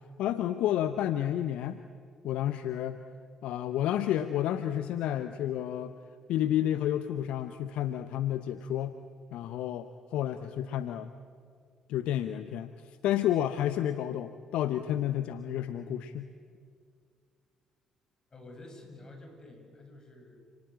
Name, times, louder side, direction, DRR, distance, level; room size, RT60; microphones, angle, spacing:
voice 1, 0.2-1.8 2.2-3.0 3.4-6.0 6.3-8.9 9.3-11.1 11.9-16.3, left 11 dB, 65° left, 12 dB, 0.8 m, -30 dB
voice 2, 18.3-20.4, left 2 dB, 35° left, 3 dB, 7.9 m, -49 dB
29.0 x 19.5 x 8.9 m, 2.2 s
figure-of-eight pair, 45°, 2 cm